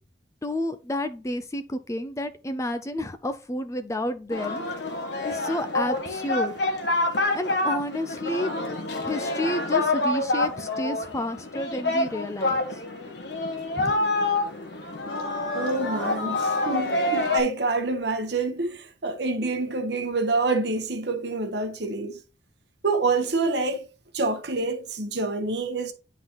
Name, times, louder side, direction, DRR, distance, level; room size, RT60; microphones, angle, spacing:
voice 1, 0.4-4.9 5.2-6.8 7.3-8.5 9.0-12.8 13.8-14.0, left 1 dB, 15° left, 0.4 m, -30 dB
Singing, 4.3-17.4, left 2 dB, 65° left, 1.2 m, -27 dB
voice 2, 15.5-22.2 22.8-23.9 24.1-25.9, right 3 dB, 60° right, 1.0 m, -27 dB
9.5 x 3.8 x 2.9 m
head